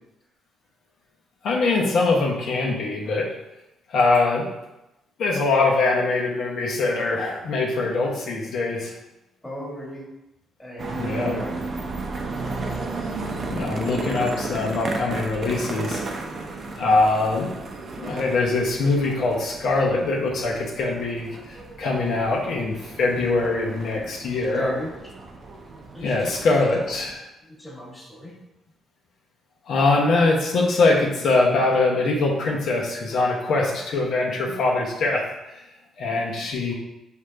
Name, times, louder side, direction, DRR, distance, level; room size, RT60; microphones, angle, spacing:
voice 1, 1.4-3.3 3.9-4.5 5.2-8.9 11.0-11.3 13.5-16.0 16.8-17.5 18.0-24.7 26.0-27.2 29.7-35.2 36.0-36.7, left 3 dB, 70° left, -1 dB, 0.9 m, -22 dB
voice 2, 9.4-10.0 10.6-11.5 24.5-24.9 25.9-26.4 26.8-27.0 27.5-28.3, left 1 dB, 15° left, -4 dB, 1.4 m, -34 dB
sound 1, 10.8-27.1, right 3 dB, 45° right, 0.6 m, -34 dB
5.1 x 2.8 x 3.3 m, 0.93 s
cardioid pair, 90°, 0 cm